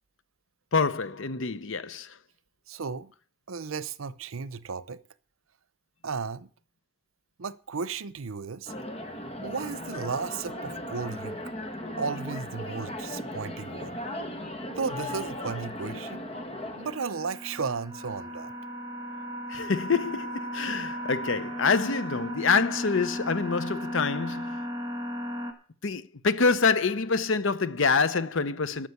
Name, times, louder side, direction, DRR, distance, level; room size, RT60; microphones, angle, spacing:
voice 1, 0.7-2.2 19.5-24.6 25.8-28.9, left 4 dB, 70° left, 0.7 m, -26 dB
voice 2, 2.7-3.1 3.5-5.0 6.0-6.5 7.4-8.7 9.4-11.5 12.0-14.0 14.7-16.2 16.8-18.5, right 5 dB, 85° right, 0.7 m, -34 dB
sound 1, 8.7-17.0, left 1 dB, 30° left, 1.3 m, -37 dB
sound 2, 16.9-25.5, equal, 15° right, 1.7 m, -36 dB
12.5 x 6.1 x 8.2 m
head